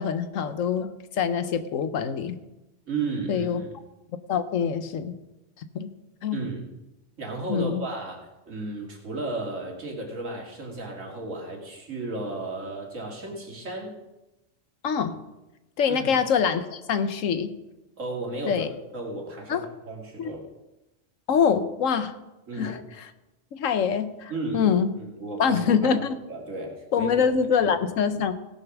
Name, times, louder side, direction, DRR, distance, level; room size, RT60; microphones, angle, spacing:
voice 1, 0.0-2.4 3.3-3.7 4.3-5.2 5.7-5.9 6.2-6.4 7.5-7.8 14.8-15.2 15.8-17.5 18.4-18.7 19.5-19.7 20.2-20.3 21.3-22.1 22.6-23.1 23.5-24.9 25.4-26.2 26.9-28.3, left 7 dB, 90° left, 11 dB, 1.3 m, -25 dB
voice 2, 2.9-3.7 6.3-6.6 7.2-8.2 8.5-13.9 15.9-16.1 18.0-18.7 18.9-20.4 22.5-22.8 24.3-24.7 25.0-26.0 26.3-27.1 27.6-27.7, right 3 dB, 85° right, 0 dB, 2.7 m, -34 dB
17.0 x 6.7 x 6.1 m, 1.0 s
omnidirectional pair, 1.3 m